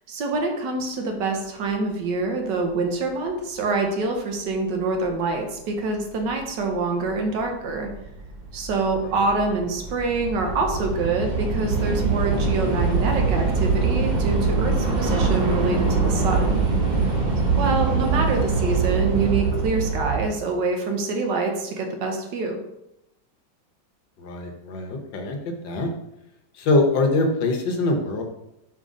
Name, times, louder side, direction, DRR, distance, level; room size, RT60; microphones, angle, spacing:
voice 1, 0.1-7.9 8.5-16.6 17.6-22.6, right 3 dB, 75° right, 3 dB, 1.6 m, -26 dB
Train / Subway metro underground, 6.3-6.4 7.2-7.4 7.7-20.2, right 4 dB, 35° right, 0.8 m, -23 dB
voice 2, 24.2-25.4 25.6-25.9 26.6-28.2, left 2 dB, 85° left, 3 dB, 1.7 m, -23 dB
5.2 x 3.7 x 5.1 m, 0.85 s
omnidirectional pair, 2.0 m